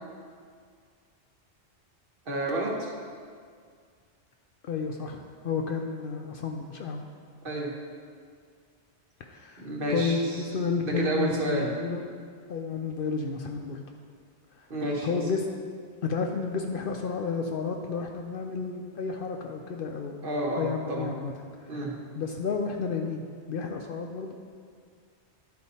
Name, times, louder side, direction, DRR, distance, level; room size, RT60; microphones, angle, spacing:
voice 1, 2.3-2.9 7.4-7.8 9.6-10.2 10.8-11.7 14.7-15.2 20.2-21.1 21.7-21.9, right 1 dB, 55° right, -1 dB, 1.2 m, -30 dB
voice 2, 4.6-7.0 9.2-12.0 12.5-13.8 14.6-14.7 15.0-15.4 16.0-20.3 20.6-21.3 22.2-24.3, left 5 dB, 60° left, 2 dB, 0.6 m, -31 dB
10.5 x 4.3 x 4.1 m, 2.1 s
omnidirectional pair, 1.2 m